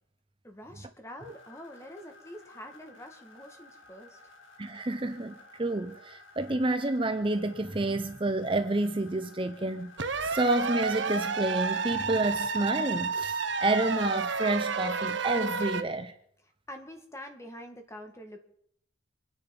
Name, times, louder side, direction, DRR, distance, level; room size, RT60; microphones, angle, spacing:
voice 1, 0.4-4.3 16.7-18.4, equal, 15° left, 2.0 m, -46 dB
sound 1, 1.2-14.7, left 2 dB, 85° left, 4.3 m, -54 dB
voice 2, 4.6-10.0 10.2-16.1, right 2 dB, 25° right, 0.7 m, -29 dB
sound 2, 10.0-15.8, right 4 dB, 65° right, 1.1 m, -31 dB
26.0 x 9.9 x 5.4 m
head